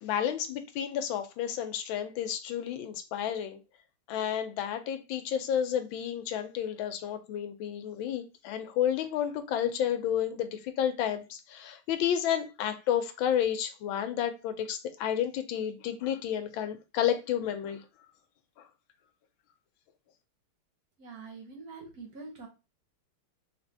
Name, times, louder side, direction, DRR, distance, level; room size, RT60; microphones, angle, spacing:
voice 1, 0.0-3.6 4.1-17.8, left 9 dB, 75° left, 1.3 m, -31 dB
voice 2, 21.0-22.5, right 4 dB, 55° right, 1.1 m, -45 dB
3.6 x 3.4 x 2.6 m
omnidirectional pair, 2.3 m